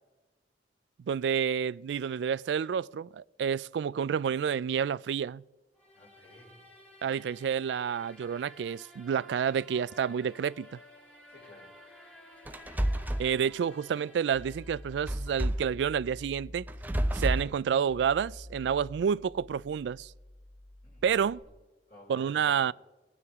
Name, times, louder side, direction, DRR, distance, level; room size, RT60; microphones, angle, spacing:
voice 1, 1.1-5.4 7.0-10.8 13.2-16.6 17.1-20.1 21.0-21.4 22.1-22.7, right 7 dB, 75° right, 0.3 m, -29 dB
sound 1, 5.8-15.7, left 1 dB, 5° left, 1.8 m, -54 dB
voice 2, 5.9-6.6 11.3-11.7 20.8-21.4 21.9-22.7, equal, 55° left, 4.9 m, -54 dB
sound 2, 12.5-13.3 15.1-15.7 16.7-17.5, right 1 dB, 10° right, 0.5 m, -29 dB
sound 3, 14.3-21.4, left 1 dB, 35° left, 1.2 m, -48 dB
21.5 x 9.6 x 3.6 m
head